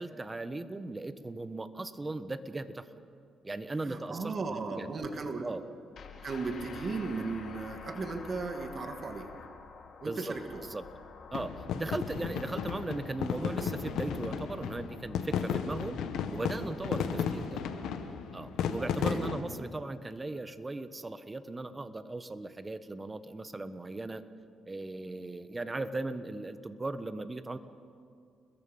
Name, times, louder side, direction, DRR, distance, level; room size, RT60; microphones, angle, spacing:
voice 1, 0.0-2.9 3.4-5.0 5.4-5.6 10.0-10.3 10.7-10.8 11.3-16.0 16.3-17.6 18.3-24.2 24.7-27.6, right 2 dB, 20° right, 11 dB, 1.3 m, -38 dB
voice 2, 3.8-5.5 6.2-9.3 10.0-10.6 12.2-12.4 17.1-17.2 19.0-19.3, right 4 dB, 45° right, 5 dB, 2.3 m, -36 dB
sound 1, 5.9-16.9, left 6 dB, 60° left, 2.5 m, -49 dB
sound 2, 11.3-19.4, left 7 dB, 80° left, 1.6 m, -34 dB
30.0 x 21.5 x 5.6 m, 2.4 s
cardioid pair, 90°, 0 cm